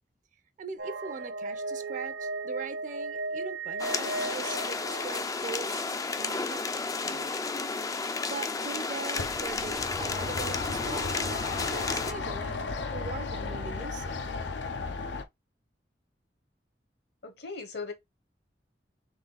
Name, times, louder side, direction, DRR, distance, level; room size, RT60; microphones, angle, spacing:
voice 1, 0.6-7.4 8.2-14.2, right 4 dB, 45° right, 0.6 m, -41 dB
sound 1, 0.8-5.5, right 3 dB, 75° right, 0.9 m, -36 dB
sound 2, 3.8-12.1, left 4 dB, 20° left, 0.3 m, -32 dB
sound 3, 9.2-15.2, left 4 dB, 90° left, 0.6 m, -35 dB
voice 2, 17.2-17.9, left 4 dB, 65° left, 1.1 m, -38 dB
3.8 x 3.2 x 3.9 m
head